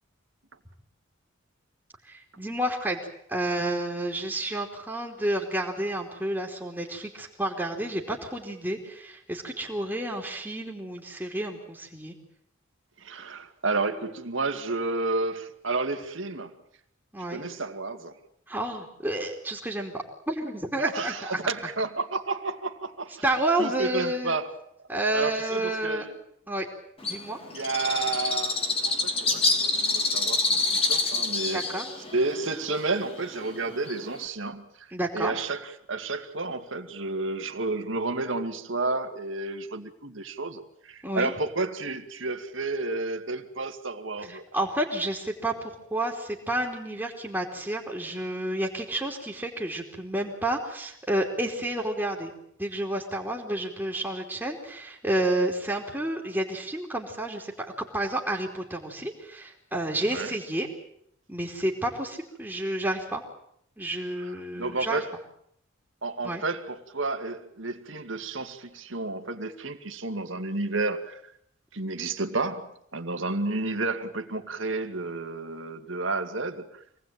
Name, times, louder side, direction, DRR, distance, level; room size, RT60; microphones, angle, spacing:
voice 1, 2.1-3.0 3.3-12.1 17.1-17.4 18.5-21.4 23.2-24.4 24.9-26.0 26.5-26.7 27.0-27.4 31.4-31.9 34.9-35.3 41.0-41.3 44.3-52.3 52.6-60.7 61.3-63.2 63.8-65.0 66.2-66.4, right 1 dB, 10° right, 3.3 m, -30 dB
voice 2, 13.0-16.5 17.3-18.1 20.9-23.2 23.6-24.5 25.1-26.1 27.5-28.6 28.8-31.6 32.1-34.9 35.1-44.4 60.1-60.3 64.2-65.1 66.0-71.2 71.7-76.8, right 3 dB, 65° right, 2.2 m, -31 dB
Bird, 27.0-34.3, left 3 dB, 30° left, 2.8 m, -27 dB
26.5 x 19.0 x 9.2 m
head